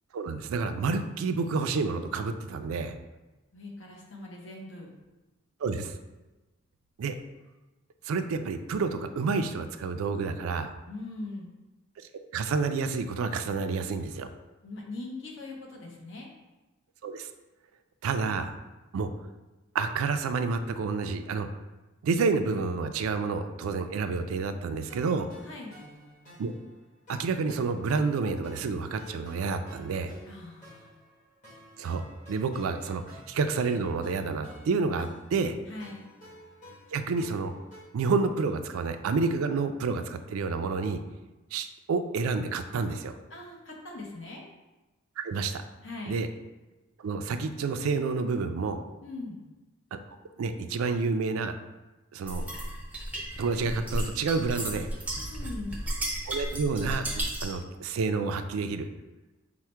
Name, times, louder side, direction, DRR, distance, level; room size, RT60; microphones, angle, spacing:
voice 1, 0.1-3.0 5.6-5.9 7.0-7.2 8.0-10.7 12.3-14.3 17.0-17.3 18.0-18.6 18.9-19.1 19.7-21.5 22.0-25.3 26.4-26.5 27.1-30.1 31.8-35.6 36.9-37.5 37.9-41.0 41.5-43.1 45.2-45.6 46.1-46.3 47.0-48.8 49.9-50.0 50.4-51.5 52.1-52.5 53.4-54.9 56.3-58.9, right 4 dB, 85° right, 9 dB, 0.3 m, -29 dB
voice 2, 3.5-4.9 10.9-11.5 14.6-16.3 25.4-25.7 30.2-30.9 35.7-36.0 43.3-44.4 45.8-46.2 49.0-49.4 55.2-55.8, left 2 dB, 60° left, -1 dB, 0.8 m, -41 dB
sound 1, 24.9-37.8, equal, 35° left, 1.5 m, -51 dB
sound 2, 52.3-57.6, right 1 dB, 5° right, 0.4 m, -34 dB
4.5 x 2.1 x 4.4 m, 1.1 s
head